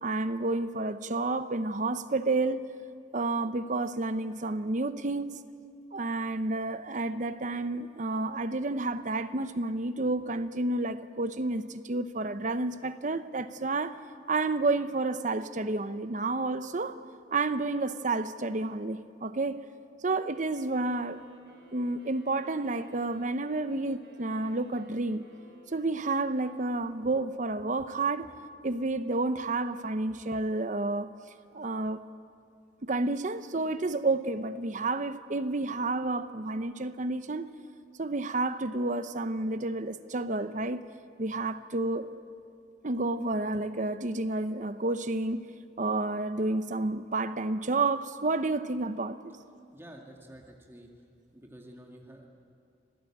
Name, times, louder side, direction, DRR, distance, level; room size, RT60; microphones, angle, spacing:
voice 1, 0.0-2.6 3.1-5.4 5.9-14.0 14.3-17.0 17.3-19.6 20.0-21.2 21.7-25.2 25.7-28.3 28.6-31.1 31.5-32.0 32.8-37.5 38.0-40.9 41.2-42.1 42.8-45.5 45.8-49.3, right 2 dB, 45° right, 12 dB, 0.8 m, -30 dB
sound 1, 20.3-27.3, equal, 65° right, 4.6 m, -59 dB
voice 2, 49.7-50.9 51.3-52.3, right 1 dB, 15° right, 0 dB, 2.2 m, -49 dB
26.5 x 17.0 x 8.7 m, 2.3 s
head